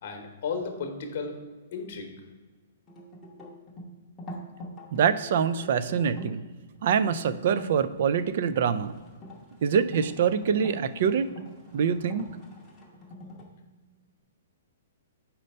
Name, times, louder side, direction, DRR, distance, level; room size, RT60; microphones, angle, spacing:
voice 1, 0.0-1.4 1.7-2.1, left 5 dB, 40° left, 4 dB, 1.0 m, -34 dB
sound 1, 2.9-6.4 7.4-7.8 8.3-13.4, equal, 10° left, 0.8 m, -44 dB
voice 2, 4.9-6.4 6.8-8.9 9.6-11.3 11.7-12.3, right 7 dB, 45° right, 14 dB, 0.3 m, -25 dB
5.1 x 4.3 x 5.3 m, 1.3 s
hypercardioid pair, 175°, 0 cm